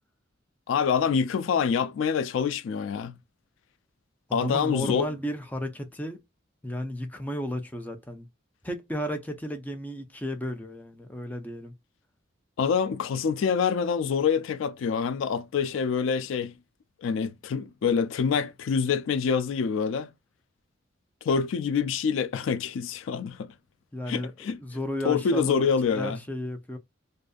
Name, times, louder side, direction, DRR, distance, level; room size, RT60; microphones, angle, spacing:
voice 1, 0.7-3.2 4.3-5.1 12.6-16.5 17.0-20.1 21.2-23.5 24.1-24.6 25.0-26.2, left 6 dB, 80° left, 0.3 m, -26 dB
voice 2, 4.3-6.2 6.6-8.3 8.6-11.7 23.9-24.3 24.6-26.8, equal, 10° left, 0.4 m, -33 dB
2.5 x 2.5 x 2.2 m
head